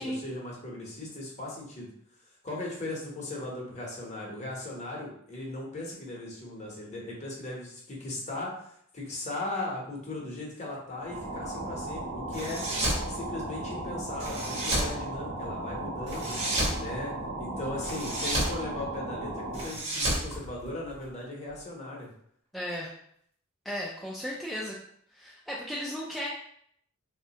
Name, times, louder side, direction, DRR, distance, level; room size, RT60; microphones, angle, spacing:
voice 1, 0.0-1.9 2.4-12.6 13.1-16.4 16.7-22.1, left 2 dB, 35° left, -3 dB, 0.8 m, -38 dB
sound 1, 11.0-19.8, right 2 dB, 85° right, 0.7 m, -36 dB
sound 2, 12.3-13.1 14.2-14.9 16.1-16.8 17.8-18.6 19.5-21.1, right 1 dB, 30° right, 0.8 m, -30 dB
voice 2, 22.5-22.9 23.7-24.8 25.1-26.3, equal, ahead, -6 dB, 0.3 m, -35 dB
3.3 x 2.1 x 2.8 m, 0.67 s
head